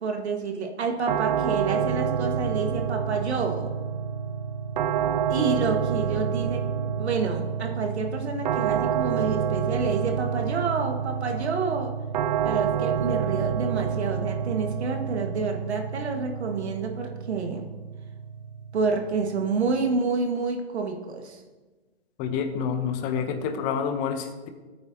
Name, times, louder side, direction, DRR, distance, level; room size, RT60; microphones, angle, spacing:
voice 1, 0.0-3.7 5.3-6.7 7.0-11.9 12.4-17.7 18.7-21.4, right 4 dB, 75° right, 3 dB, 1.9 m, -28 dB
sound 1, 1.1-20.0, right 7 dB, 40° right, 0.5 m, -28 dB
voice 2, 22.2-24.5, left 7 dB, 25° left, 8 dB, 0.9 m, -28 dB
15.0 x 8.7 x 2.9 m, 1.2 s
hypercardioid pair, 145°, 33 cm